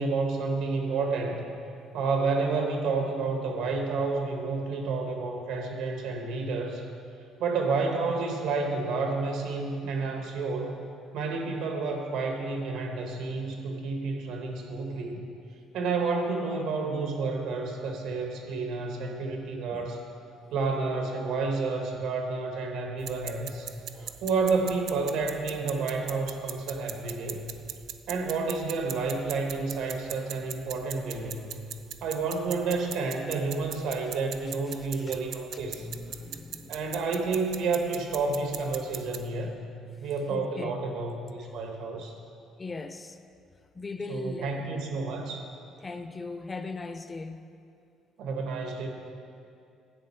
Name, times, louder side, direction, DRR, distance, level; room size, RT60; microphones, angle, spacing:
voice 1, 0.0-1.5 1.9-6.9 7.4-10.8 11.1-15.2 15.7-20.0 20.5-23.7 24.2-27.5 28.1-31.6 32.0-35.9 36.7-39.6 40.0-42.1 44.1-45.4 48.2-48.9, right 4 dB, 85° right, 3 dB, 1.3 m, -30 dB
sound 1, 23.0-39.3, right 9 dB, 65° right, 0.4 m, -41 dB
voice 2, 23.9-24.2 34.1-34.2 34.7-37.0 40.0-40.8 41.4-41.6 42.6-43.2 43.7-44.7 45.8-47.5, left 3 dB, 20° left, 9 dB, 0.4 m, -41 dB
10.5 x 7.6 x 4.4 m, 2.5 s
cardioid pair, 130°, 0 cm